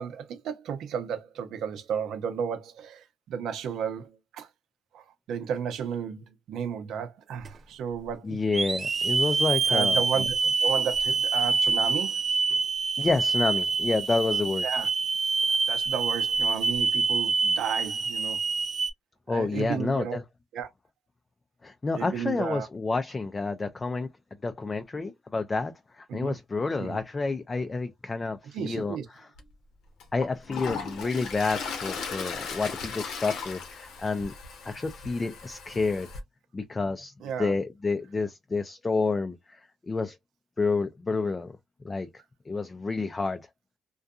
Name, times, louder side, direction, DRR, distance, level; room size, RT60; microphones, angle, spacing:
voice 1, 0.0-4.5 4.9-8.4 9.7-12.2 14.6-14.9 15.7-18.4 19.3-20.2 20.5-20.7 22.0-22.7 26.1-26.3 26.8-27.0 28.5-29.0 37.2-37.5, right 7 dB, 80° right, 0.7 m, -33 dB
Hiss / Alarm, 7.4-7.5 8.5-18.9, right 4 dB, 35° right, 0.5 m, -26 dB
voice 2, 8.2-10.0 13.0-14.7 19.3-20.2 21.6-24.1 24.4-29.3 30.1-34.3 34.6-36.1 36.5-37.1 37.4-40.2 40.6-41.5 41.8-42.1 42.5-43.4, left 3 dB, 25° left, 0.4 m, -29 dB
Toilet flush, 29.4-29.5 30.0-36.2, left 5 dB, 80° left, 0.8 m, -37 dB
2.6 x 2.2 x 2.3 m
cardioid pair, 90°, 0 cm